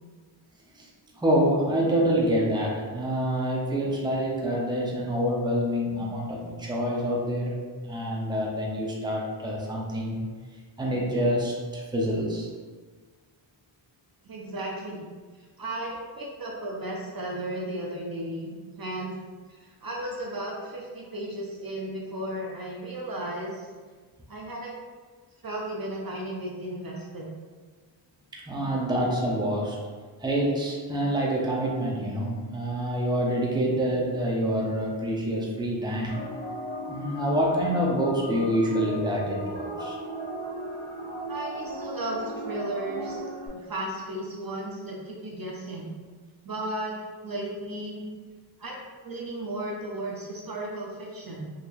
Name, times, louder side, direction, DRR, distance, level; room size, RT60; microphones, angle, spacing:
voice 1, 1.2-10.2 10.8-12.5 28.3-29.8 30.2-36.2 36.9-40.0, equal, 10° right, -3 dB, 0.7 m, -27 dB
voice 2, 14.3-15.1 15.6-19.2 19.5-23.7 24.3-24.8 25.4-27.3 41.3-43.2 43.5-45.9 46.4-46.9 47.2-48.1 48.6-48.8 49.0-51.5, right 1 dB, 45° right, -2 dB, 0.6 m, -34 dB
sound 1, 36.1-43.5, equal, 60° left, 1.1 m, -36 dB
3.9 x 2.8 x 2.5 m, 1.4 s
wide cardioid pair, 75°, 48 cm